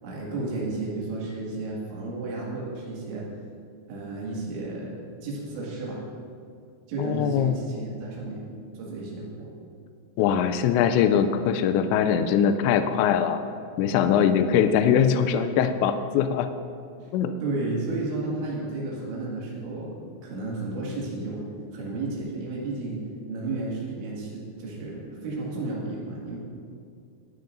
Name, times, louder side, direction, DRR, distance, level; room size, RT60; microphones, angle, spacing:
voice 1, 0.0-3.3 3.9-6.0 6.9-8.5 8.7-9.5 17.0-17.1 17.4-21.5 21.7-23.0 23.3-26.4, right 2 dB, 80° right, -5 dB, 4.5 m, -32 dB
voice 2, 7.0-7.5 10.2-13.4 13.8-16.5 17.1-17.3, left 8 dB, 85° left, 9 dB, 2.8 m, -22 dB
19.5 x 10.5 x 2.6 m, 2.4 s
omnidirectional pair, 5.2 m